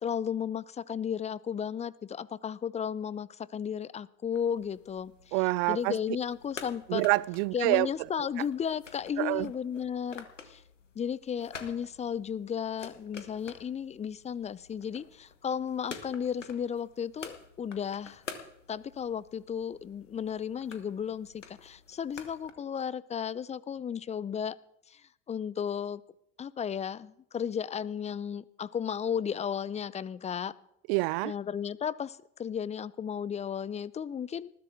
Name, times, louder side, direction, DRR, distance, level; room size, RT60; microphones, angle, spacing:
voice 1, 0.0-5.4 5.7-7.1 7.5-10.6 11.0-18.2 18.7-24.6 24.9-25.0 25.3-26.0 26.4-30.5 31.2-34.5, left 8 dB, 20° left, 0.5 m, -34 dB
sound 1, 4.3-22.5, left 5 dB, 85° left, 1.3 m, -49 dB
voice 2, 5.3-5.9 6.9-7.9 9.2-9.5 30.9-31.3, right 25 dB, 55° right, 0.4 m, -26 dB
20.0 x 14.0 x 3.5 m
figure-of-eight pair, 65°, 36 cm